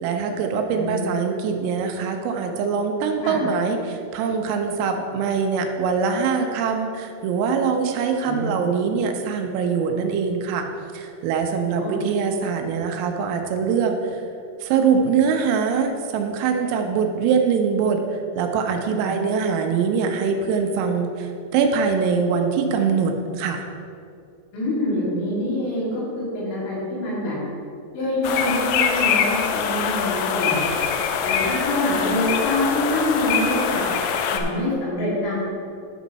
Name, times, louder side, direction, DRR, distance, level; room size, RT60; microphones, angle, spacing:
voice 1, 0.0-10.7 10.9-14.2 14.6-23.6, right 6 dB, 85° right, 4 dB, 3.4 m, -23 dB
voice 2, 24.5-27.4 27.9-30.6 31.2-33.8 34.2-35.5, left 1 dB, 70° left, -6 dB, 4.7 m, -25 dB
sound 1, 28.2-34.4, left 7 dB, 85° left, 2.8 m, -23 dB
12.0 x 6.3 x 4.1 m, 2.4 s
omnidirectional pair, 6.0 m